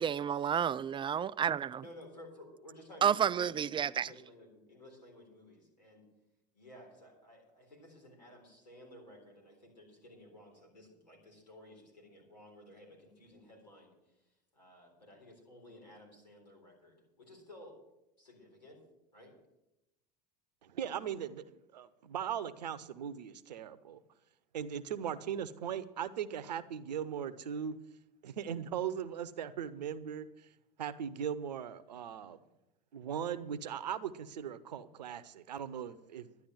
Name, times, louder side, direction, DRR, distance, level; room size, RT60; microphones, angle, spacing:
voice 1, 0.0-1.7 3.0-4.1, right 8 dB, 25° right, 0.3 m, -30 dB
voice 2, 1.8-6.0 6.5-13.9 14.5-17.8 18.2-18.8 19.1-19.3, left 1 dB, 90° left, 3.9 m, -55 dB
voice 3, 20.6-24.0 24.5-27.8 28.2-30.5 30.8-32.4 32.9-36.4, right 8 dB, 80° right, 0.8 m, -39 dB
12.0 x 10.0 x 6.3 m
hypercardioid pair, 75°, 21 cm